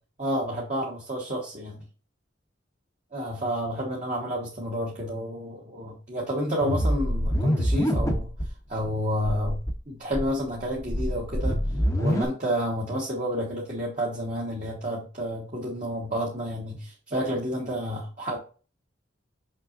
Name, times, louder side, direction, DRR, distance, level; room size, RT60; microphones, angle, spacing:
voice 1, 0.2-1.8 3.1-8.3 8.7-9.6 9.9-11.6 12.0-18.4, equal, 40° right, -3 dB, 1.6 m, -30 dB
sound 1, 6.6-8.5 8.8-8.9 9.2-9.7 10.1-12.2, equal, 15° left, 0.9 m, -25 dB
6.2 x 6.0 x 2.6 m, 0.35 s
head